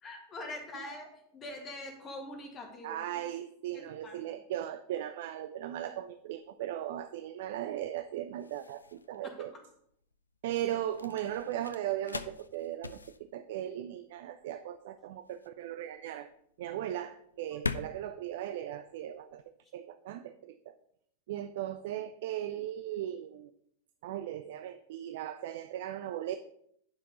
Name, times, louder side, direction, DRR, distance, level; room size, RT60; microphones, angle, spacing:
voice 1, 0.0-3.2 3.7-4.4 9.2-9.3 17.5-17.6, left 2 dB, 25° left, 2 dB, 2.0 m, -44 dB
voice 2, 2.8-9.5 10.4-13.0 13.3-16.3 16.6-19.4 19.7-20.8 21.3-23.5 24.0-26.4, right 12 dB, 55° right, 11 dB, 0.4 m, -37 dB
sound 1, 5.6-19.5, left 4 dB, 75° left, 0.4 m, -44 dB
9.7 x 5.8 x 3.9 m, 0.70 s
figure-of-eight pair, 90°, 0 cm